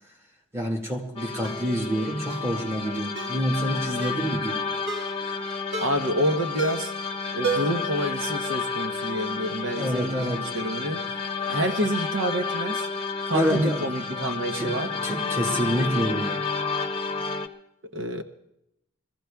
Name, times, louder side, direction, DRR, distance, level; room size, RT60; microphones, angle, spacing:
voice 1, 0.5-4.8 9.7-10.6 10.8-11.0 13.3-16.4, equal, 15° right, 1.9 m, -28 dB
sound 1, 1.1-17.5, left 4 dB, 30° left, 0.8 m, -31 dB
Ringtone, 1.4-1.7 2.3-2.5 3.2-3.4 4.0-4.3 4.9-5.2 5.7-6.1 6.6-7.0 7.4-7.9 8.2-8.3, right 4 dB, 60° right, 1.5 m, -31 dB
voice 2, 5.8-6.9 7.3-11.2 11.5-12.9 13.3-14.9 17.9-18.2, equal, 80° right, 1.0 m, -28 dB
22.5 x 15.0 x 3.5 m
head